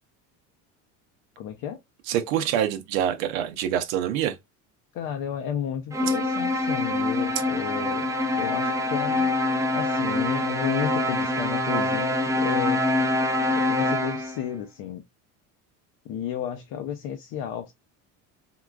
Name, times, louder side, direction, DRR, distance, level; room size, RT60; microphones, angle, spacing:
voice 1, 1.4-1.8 4.9-8.1 8.4-9.3 9.7-12.8 13.6-15.0 16.0-17.7, left 9 dB, 60° left, 0.6 m, -32 dB
voice 2, 2.1-4.4, right 10 dB, 90° right, 0.6 m, -25 dB
sound 1, 5.9-14.5, left 1 dB, 10° right, 0.5 m, -25 dB
3.7 x 2.3 x 2.3 m
supercardioid pair, 95°, 40 cm